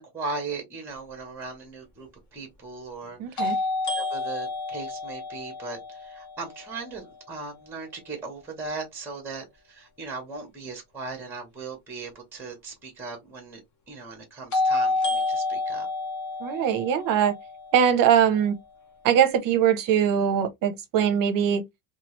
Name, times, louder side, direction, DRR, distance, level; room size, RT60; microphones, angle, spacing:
voice 1, 0.0-3.5 3.9-13.6 13.9-15.9, right 3 dB, 5° right, 0.8 m, -38 dB
sound 1, 1.4-1.5 3.4-7.3 14.5-18.5, left 3 dB, 35° left, 0.9 m, -29 dB
voice 2, 3.2-3.6 16.4-17.3 17.7-18.5 19.0-21.6, right 8 dB, 45° right, 0.6 m, -21 dB
3.0 x 2.4 x 3.0 m
cardioid pair, 180°, 48 cm